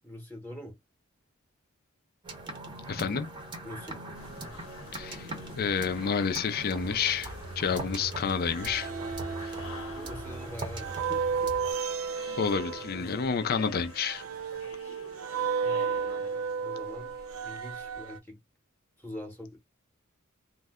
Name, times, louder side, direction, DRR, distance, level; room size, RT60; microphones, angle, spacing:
voice 1, 0.0-0.8 3.6-4.0 7.8-8.1 9.1-9.2 9.5-12.1 12.9-13.5 14.5-14.9 15.6-17.1 17.4-18.4 19.0-19.6, left 1 dB, 10° left, 0.9 m, -45 dB
sound 1, 2.2-11.7, right 2 dB, 20° right, 0.7 m, -41 dB
voice 2, 2.9-3.3 4.9-5.3 5.6-8.9 9.4-9.5 12.4-14.2, left 6 dB, 45° left, 0.4 m, -29 dB
sound 2, 4.2-18.0, left 4 dB, 85° left, 0.9 m, -48 dB
sound 3, 6.7-8.2 8.5-18.2, right 6 dB, 80° right, 0.5 m, -34 dB
2.6 x 2.1 x 3.5 m
head